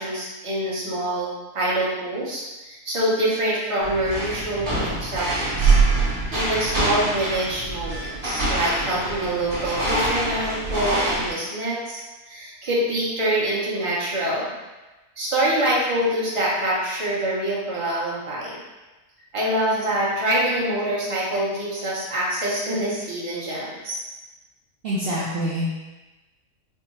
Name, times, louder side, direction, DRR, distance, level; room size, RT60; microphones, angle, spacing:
voice 1, 0.0-5.7 6.0-14.5 15.2-18.6 19.3-24.0, right 1 dB, 30° right, -7 dB, 0.7 m, -25 dB
sound 1, 3.8-11.3, right 3 dB, 50° right, 1.3 m, -24 dB
voice 2, 24.8-25.8, equal, 65° right, -7 dB, 0.6 m, -25 dB
4.5 x 2.0 x 3.0 m, 1.1 s
omnidirectional pair, 1.6 m